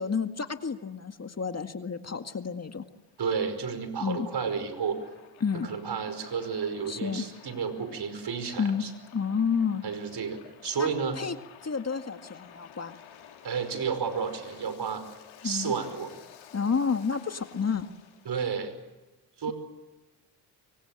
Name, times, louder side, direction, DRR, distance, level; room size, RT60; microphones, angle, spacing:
voice 1, 0.0-2.8 4.0-4.3 5.4-5.7 6.9-7.2 8.6-8.9 9.1-9.8 10.8-10.9 11.1-11.4 11.6-13.0 15.4-15.7 16.5-17.9, left 6 dB, 30° left, 7 dB, 2.0 m, -30 dB
Waves surf, 2.5-18.3, left 9 dB, 80° left, 4.8 m, -53 dB
voice 2, 3.2-5.0 5.6-8.9 9.8-11.2 13.4-15.0 15.4-16.1 18.3-18.7 19.4-19.5, right 6 dB, 55° right, 10 dB, 5.4 m, -31 dB
25.0 x 24.5 x 9.2 m, 1.1 s
supercardioid pair, 65°, 47 cm